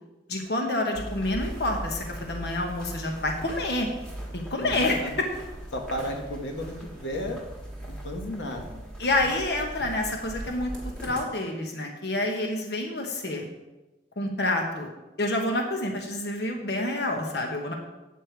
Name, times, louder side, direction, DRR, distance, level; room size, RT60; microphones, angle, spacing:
voice 1, 0.3-3.9 4.3-5.3 9.0-10.7 11.0-13.5 14.2-14.9 15.2-17.7, left 2 dB, 65° left, 2 dB, 1.1 m, -28 dB
sound 1, 0.9-11.2, right 1 dB, 5° left, 1.4 m, -39 dB
voice 2, 4.3-5.1 5.7-7.4 7.8-8.9, equal, 85° left, 2 dB, 1.1 m, -34 dB
8.3 x 6.5 x 4.5 m, 1.1 s
head